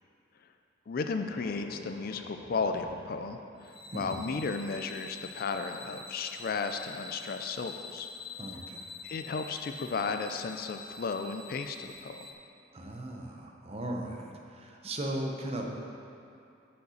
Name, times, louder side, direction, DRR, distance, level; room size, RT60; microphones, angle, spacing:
sound 1, 0.8-4.5, equal, 85° left, 1.9 m, -50 dB
voice 1, 0.9-8.1 9.0-12.3, left 4 dB, 50° left, 6 dB, 0.4 m, -34 dB
sound 2, 3.6-12.3, left 4 dB, 25° left, 0.7 m, -46 dB
voice 2, 3.9-4.3 8.4-8.9 12.7-15.7, right 1 dB, 30° right, 1 dB, 0.7 m, -37 dB
6.6 x 5.5 x 6.3 m, 2.6 s
head